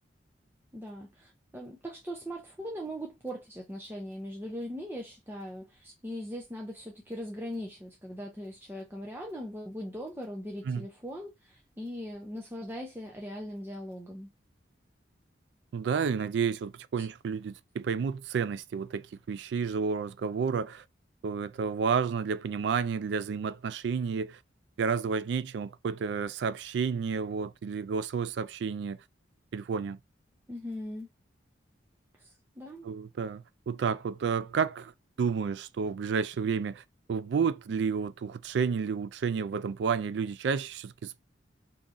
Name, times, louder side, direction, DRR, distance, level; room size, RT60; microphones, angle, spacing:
voice 1, 0.7-14.3 17.0-17.1 30.5-31.1 32.2-32.3 32.6-32.9, equal, 10° right, 0.6 m, -40 dB
voice 2, 15.7-20.8 21.2-24.4 24.8-29.0 29.5-30.0 32.8-34.9 35.2-36.8 37.1-41.2, right 6 dB, 65° right, 0.3 m, -31 dB
3.7 x 2.9 x 2.5 m
head